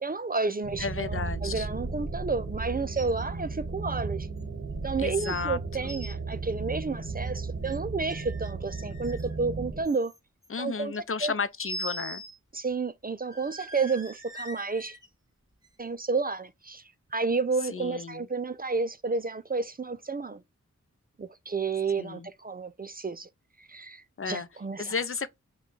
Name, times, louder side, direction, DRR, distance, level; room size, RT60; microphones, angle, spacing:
voice 1, 0.0-4.3 4.8-10.1 10.6-10.9 11.2-11.3 12.5-15.0 15.8-16.8 17.1-20.4 21.2-23.3 23.6-24.9, right 4 dB, 30° right, 0.4 m, -31 dB
sound 1, 0.6-9.8, right 4 dB, 50° right, 1.1 m, -35 dB
voice 2, 0.8-1.7 5.0-5.6 5.8-6.0 10.5-12.2 17.7-18.3 22.0-22.3 24.2-24.5 24.8-25.3, left 5 dB, 45° left, 0.5 m, -33 dB
sound 2, 3.0-3.2 3.6-3.7 4.4-4.5 5.2-5.4 5.7-6.1 7.2-7.8 8.1-9.4 9.8-10.5 11.6-12.4 12.7-12.8 13.3-15.1 15.6-15.7, right 1 dB, 10° right, 2.1 m, -42 dB
5.2 x 2.3 x 3.8 m
wide cardioid pair, 50°, 30 cm